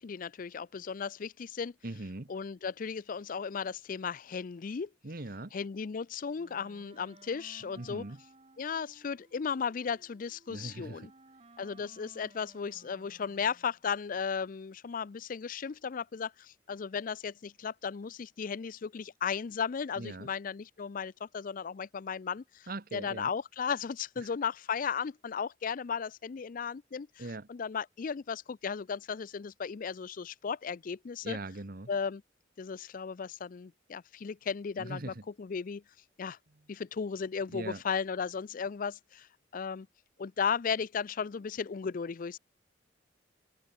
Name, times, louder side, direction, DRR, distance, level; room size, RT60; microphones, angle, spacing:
voice 1, 0.0-1.7 2.3-4.9 5.5-8.0 8.6-11.1 11.6-31.4 31.9-32.2 32.6-35.8 36.2-36.4 36.7-39.3 39.5-39.9 40.2-42.4, left 6 dB, 45° left, 0.4 m, -35 dB
voice 2, 1.8-2.3 5.0-5.5 7.8-8.2 10.5-11.1 20.0-20.3 22.7-23.3 24.2-24.3 27.2-27.5 31.2-31.9 34.8-35.2 37.5-37.8, right 2 dB, 50° right, 1.3 m, -41 dB
Wind instrument woodwind instrument, 6.4-13.8, right 2 dB, 30° right, 2.0 m, -59 dB
open air
head